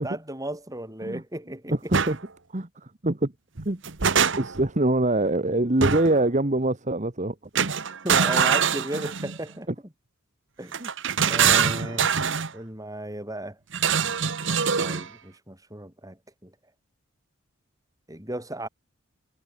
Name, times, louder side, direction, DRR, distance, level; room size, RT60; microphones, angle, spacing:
voice 1, 0.0-1.9 8.0-9.7 10.6-10.8 11.3-12.1 12.5-13.6 14.8-16.5 18.1-18.7, right 1 dB, 15° right, 7.2 m, -35 dB
sound 1, 1.9-2.2 3.6-4.7 5.8-6.2 7.6-9.4 10.7-12.5 13.7-15.1, right 7 dB, 60° right, 1.3 m, -23 dB
voice 2, 2.5-3.3 3.6-3.8 4.4-7.3 9.7-9.8 10.8-10.9, right 2 dB, 35° right, 1.4 m, -24 dB
head